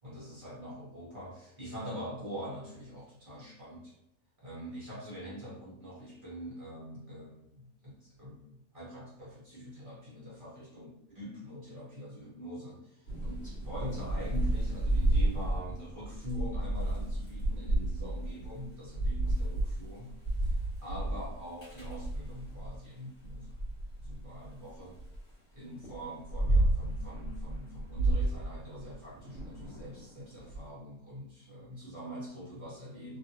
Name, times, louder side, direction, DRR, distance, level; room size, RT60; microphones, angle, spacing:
voice 1, 0.0-4.0 4.4-20.1 20.8-23.6 24.0-25.0 25.5-33.2, equal, 40° right, -7 dB, 0.9 m, -44 dB
Thunder / Rain, 13.1-22.8 23.2-25.2 25.8-30.6, right 1 dB, 70° left, 1.5 m, -31 dB
2.7 x 2.7 x 2.6 m, 0.80 s
omnidirectional pair, 1.5 m